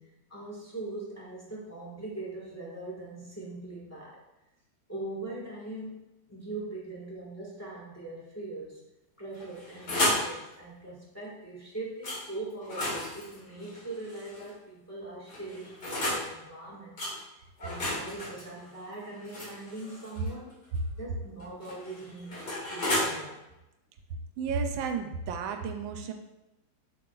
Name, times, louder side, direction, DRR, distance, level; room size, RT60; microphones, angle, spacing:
voice 1, 0.0-4.2 4.9-6.0 6.3-8.8 9.2-17.0 17.6-20.5 21.0-23.4, right 2 dB, 10° left, -6 dB, 1.4 m, -41 dB
sound 1, 9.3-10.3 12.0-12.2 12.6-14.5 15.3-16.3 17.0-17.1 17.6-20.3 21.4-23.1, left 1 dB, 55° left, 2.6 m, -33 dB
voice 2, 24.4-26.1, right 5 dB, 80° right, 6 dB, 1.4 m, -32 dB
7.5 x 5.9 x 2.4 m, 0.95 s
omnidirectional pair, 2.2 m